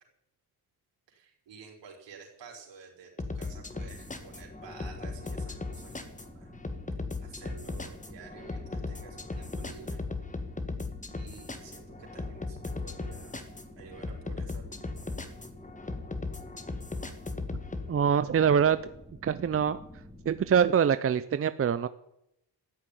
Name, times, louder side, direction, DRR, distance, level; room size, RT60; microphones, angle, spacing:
voice 1, 1.1-6.5 7.2-10.0 11.1-13.4 13.8-15.1, right 6 dB, 75° right, 0 dB, 5.1 m, -51 dB
sound 1, 3.2-17.9, left 3 dB, 15° left, 1.6 m, -37 dB
sound 2, 3.4-20.7, left 1 dB, ahead, 2.7 m, -50 dB
voice 2, 17.9-18.8 19.2-19.8 20.3-21.9, right 7 dB, 30° right, 13 dB, 0.6 m, -24 dB
14.0 x 7.3 x 10.0 m, 0.81 s
cardioid pair, 85°, 43 cm